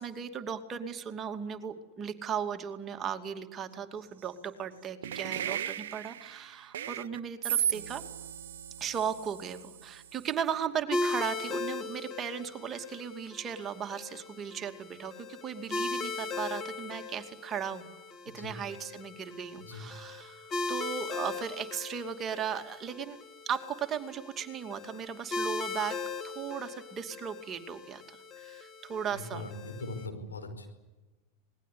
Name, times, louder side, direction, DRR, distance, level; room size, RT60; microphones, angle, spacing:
voice 1, 0.0-8.0 8.8-17.9 18.3-23.2 23.5-26.0 26.2-29.4, right 8 dB, 30° right, 6 dB, 2.5 m, -37 dB
sound 1, 5.0-10.3, right 10 dB, 70° right, 0.9 m, -35 dB
sound 2, 10.9-30.1, left 3 dB, 30° left, 2.3 m, -39 dB
voice 2, 29.1-30.7, left 2 dB, 85° left, 4 dB, 5.1 m, -41 dB
27.5 x 20.5 x 8.5 m, 1.1 s
figure-of-eight pair, 90°, 0 cm